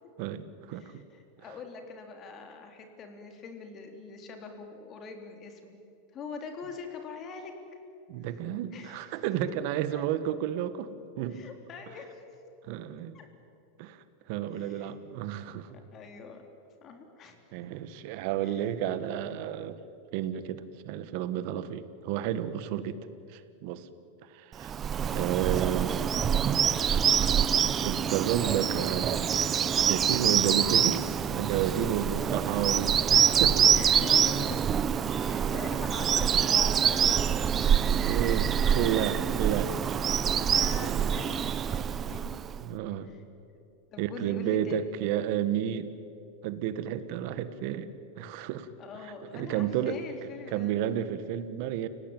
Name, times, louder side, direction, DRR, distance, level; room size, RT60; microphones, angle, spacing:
voice 1, 0.2-1.0 8.1-11.4 12.7-13.2 13.8-15.8 17.5-19.8 20.1-23.0 23.3-23.9 24.2-24.8 25.1-26.1 27.8-29.5 29.8-33.7 38.0-38.5 38.7-40.1 40.7-41.1 41.7-41.9 42.6-43.1 44.0-45.9 46.4-47.9 48.2-48.7 49.0-50.0 50.5-51.9, right 10 dB, 55° right, 13 dB, 1.6 m, -31 dB
voice 2, 0.7-5.8 6.1-7.6 8.7-9.1 9.9-10.0 11.3-12.2 13.1-13.3 14.5-14.9 15.9-16.5 16.8-17.4 18.4-18.6 25.0-25.2 33.7-38.8 40.4-42.4 43.0-43.2 43.9-45.0 48.8-50.8, left 5 dB, 35° left, 5 dB, 3.8 m, -43 dB
Bird vocalization bird call bird song, 24.6-42.6, right 8 dB, 25° right, 0.8 m, -26 dB
29.5 x 18.0 x 9.1 m, 2.6 s
supercardioid pair, 135°, 0 cm